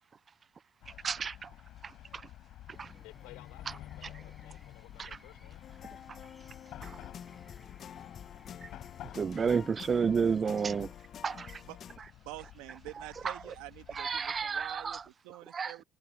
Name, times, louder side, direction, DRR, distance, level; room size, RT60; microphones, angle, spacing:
Chatter / Car passing by / Traffic noise roadway noise, 0.8-15.1, left 13 dB, 70° left, 6.5 m, -51 dB
voice 1, 1.0-1.5 2.8-2.9 5.0-5.1 6.8-7.0 9.1-10.9 11.2-11.6 13.2-13.3 13.9-15.0 15.5-15.7, right 6 dB, 40° right, 0.3 m, -30 dB
sound 1, 2.7-10.9, left 1 dB, 5° left, 5.5 m, -60 dB
voice 2, 3.0-5.6, left 23 dB, 85° left, 4.2 m, -56 dB
sound 2, 5.6-12.0, left 8 dB, 55° left, 0.8 m, -49 dB
voice 3, 11.6-15.8, right 19 dB, 85° right, 1.6 m, -47 dB
supercardioid pair, 80°, 0 cm